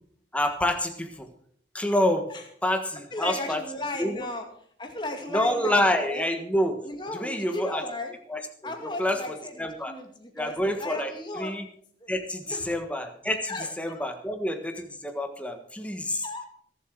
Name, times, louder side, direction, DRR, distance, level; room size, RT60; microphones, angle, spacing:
voice 1, 0.3-1.3 1.7-2.3 2.6-3.6 4.0-4.2 5.3-6.8 7.1-7.8 8.3-9.9 10.4-11.7 12.1-16.3, left 1 dB, 5° left, 6 dB, 1.4 m, -28 dB
voice 2, 3.1-4.4 4.8-6.2 6.8-8.1 8.6-11.5 12.0-12.1 12.5-12.7 13.5-14.1 16.2-16.5, left 2 dB, 25° left, 3 dB, 2.2 m, -36 dB
23.5 x 7.8 x 4.7 m, 0.62 s
head